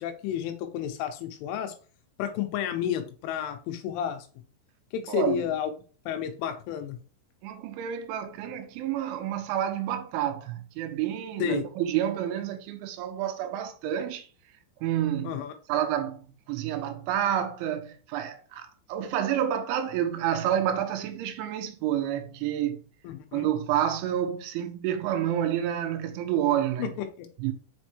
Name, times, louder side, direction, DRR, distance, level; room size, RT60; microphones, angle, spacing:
voice 1, 0.0-1.7 2.2-4.3 4.9-5.7 6.1-7.0 11.4-11.6 15.2-15.5 23.0-23.5 26.8-27.3, left 9 dB, 90° left, 3.3 m, -31 dB
voice 2, 5.1-5.5 7.4-14.3 14.8-15.4 15.7-22.8 23.3-26.9 27.4-27.5, right 10 dB, 85° right, 3.0 m, -29 dB
6.7 x 5.3 x 3.1 m
omnidirectional pair, 5.7 m